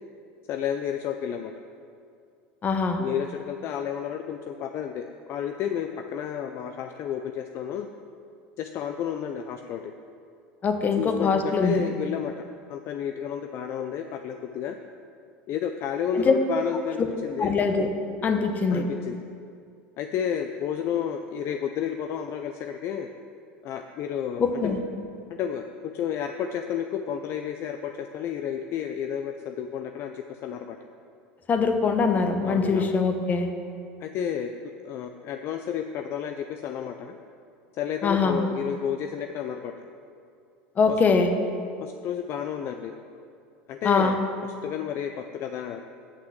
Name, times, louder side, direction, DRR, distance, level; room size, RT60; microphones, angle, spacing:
voice 1, 0.5-1.5 3.0-7.9 8.6-9.9 11.0-12.3 12.7-14.8 15.5-17.5 18.7-19.2 20.0-23.1 23.6-24.8 25.3-25.6 25.9-30.8 32.4-32.9 34.0-37.1 37.8-39.7 40.9-41.0 41.8-42.9 43.7-44.2 44.6-45.8, left 8 dB, 50° left, 6 dB, 0.5 m, -31 dB
voice 2, 2.6-3.0 10.6-11.7 16.2-16.3 17.0-17.1 17.4-17.9 18.2-18.8 24.4-24.8 31.5-33.5 38.0-38.4 40.8-41.3 43.8-44.1, left 4 dB, 30° left, 6 dB, 1.0 m, -23 dB
8.5 x 5.8 x 7.5 m, 2.4 s
supercardioid pair, 100°, 5 cm